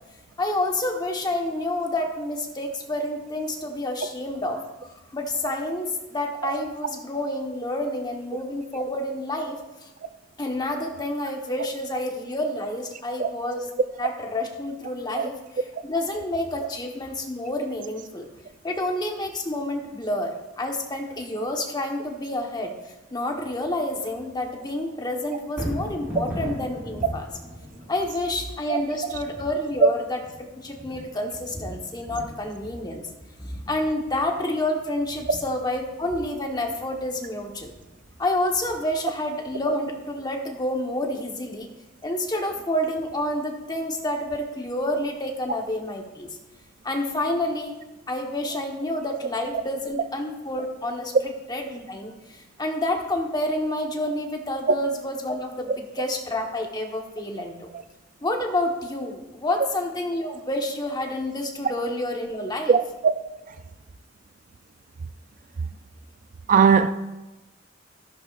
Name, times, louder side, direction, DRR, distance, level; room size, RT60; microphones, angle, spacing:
voice 1, 0.4-4.6 5.1-9.6 10.4-13.7 14.0-15.4 15.8-18.3 18.6-22.7 23.1-27.3 27.9-33.0 33.7-37.7 38.2-41.7 42.0-46.3 46.8-47.7 48.1-57.7 58.2-62.7, left 1 dB, 20° left, 1.2 m, -29 dB
Thunder, 25.4-39.7 40.1-40.2, equal, 10° right, 4.2 m, -39 dB
voice 2, 66.5-66.9, right 6 dB, 45° right, 0.4 m, -18 dB
13.5 x 11.0 x 2.5 m
head